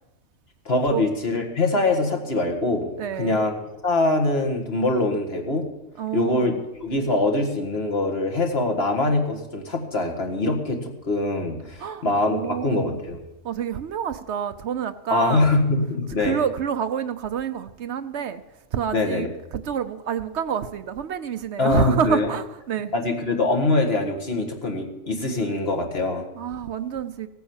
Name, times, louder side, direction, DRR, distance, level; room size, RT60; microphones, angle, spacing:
voice 1, 0.7-5.6 6.1-6.5 6.8-13.2 15.1-16.4 18.9-19.3 21.6-22.3 22.9-26.2, left 2 dB, 55° left, 2.0 m, -23 dB
voice 2, 3.0-3.4 6.0-6.6 11.8-13.0 13.4-15.6 16.2-18.4 18.7-22.9 26.3-27.3, right 8 dB, 65° right, 0.9 m, -28 dB
16.0 x 9.2 x 7.2 m
omnidirectional pair, 1.3 m